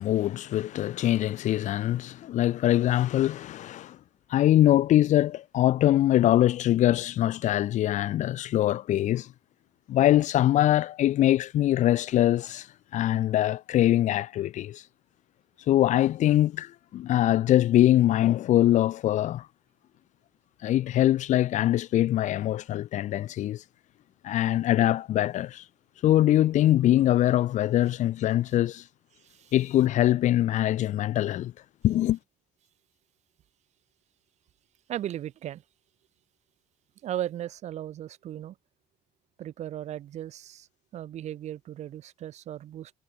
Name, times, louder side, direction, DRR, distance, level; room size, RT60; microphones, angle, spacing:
voice 1, 0.0-4.0 4.3-9.3 9.9-12.7 12.9-14.8 15.7-19.5 20.6-23.6 24.2-25.6 26.0-28.8 29.5-31.5 31.8-32.2, left 13 dB, 50° left, 2.5 m, -23 dB
voice 2, 29.2-29.5 34.9-35.6 37.0-38.5 39.4-40.7 40.9-42.9, right 12 dB, 45° right, 4.1 m, -36 dB
cardioid pair, 175°, 16 cm